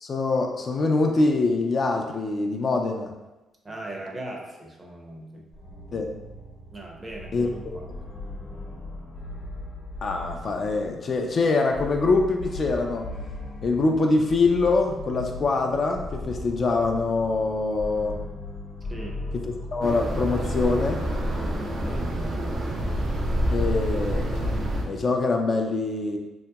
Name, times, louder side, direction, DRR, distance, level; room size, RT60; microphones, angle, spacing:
voice 1, 0.0-3.1 5.9-6.1 7.3-7.7 10.0-13.1 13.6-18.2 19.4-21.0 23.5-26.2, left 3 dB, 45° left, 3 dB, 0.3 m, -24 dB
voice 2, 3.6-5.5 6.7-7.9 18.9-19.1 21.5-22.1, right 1 dB, 25° right, 0 dB, 0.6 m, -38 dB
sound 1, 5.5-21.2, left 2 dB, 70° left, 0.8 m, -38 dB
sound 2, 19.8-24.8, equal, 75° right, 0.6 m, -27 dB
2.8 x 2.8 x 2.3 m, 1.0 s
cardioid pair, 90°, 0 cm